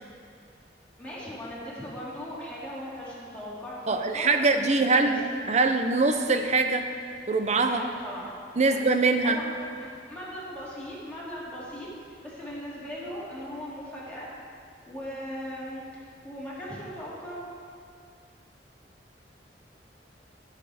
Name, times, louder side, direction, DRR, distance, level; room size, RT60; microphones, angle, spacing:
voice 1, 1.0-4.5 4.8-5.6 7.7-8.3 8.6-8.8 9.2-9.5 9.8-11.9 12.2-14.3 14.9-17.4, equal, 5° left, -8 dB, 2.7 m, -39 dB
voice 2, 3.9-6.9 7.3-7.8 8.6-9.4, right 3 dB, 40° right, 6 dB, 0.7 m, -23 dB
14.0 x 6.6 x 5.0 m, 2.3 s
head